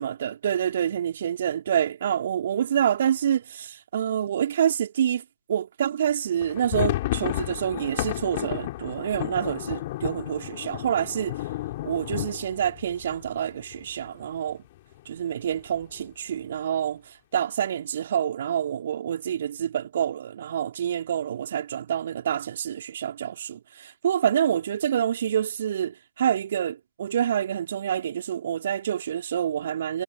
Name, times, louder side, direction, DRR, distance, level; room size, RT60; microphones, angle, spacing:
voice 1, 0.0-5.2 5.5-11.4 11.8-14.6 15.0-17.0 17.3-30.0, right 9 dB, 45° right, 5.1 m, -27 dB
sound 1, 6.4-14.1 14.4-14.5 14.8-15.0 15.5-16.0, left 16 dB, 30° left, 4.8 m, -32 dB
figure-of-eight pair, 140°, 0 cm